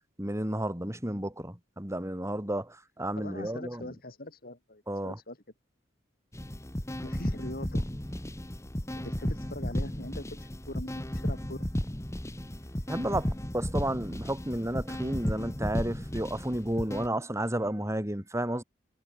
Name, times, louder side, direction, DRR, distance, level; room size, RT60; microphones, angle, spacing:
voice 1, 0.2-3.9 4.9-5.2 12.9-18.6, right 1 dB, 15° right, 3.8 m, -32 dB
voice 2, 3.2-5.4 7.0-7.9 9.0-11.7, left 1 dB, 50° left, 5.7 m, -42 dB
sound 1, 6.3-17.1, equal, 15° left, 1.4 m, -34 dB
head